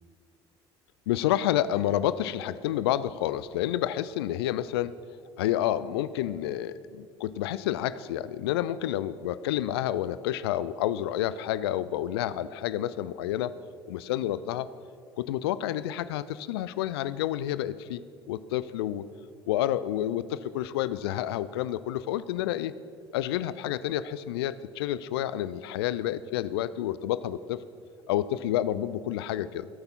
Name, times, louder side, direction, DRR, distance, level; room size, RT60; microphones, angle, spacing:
voice 1, 1.1-4.9 5.4-13.5 13.9-14.7 15.2-19.1 19.5-22.7 23.1-27.6 28.1-29.7, left 12 dB, 70° left, 16 dB, 0.4 m, -29 dB
14.0 x 8.7 x 5.8 m, 2.2 s
figure-of-eight pair, 55°, 14 cm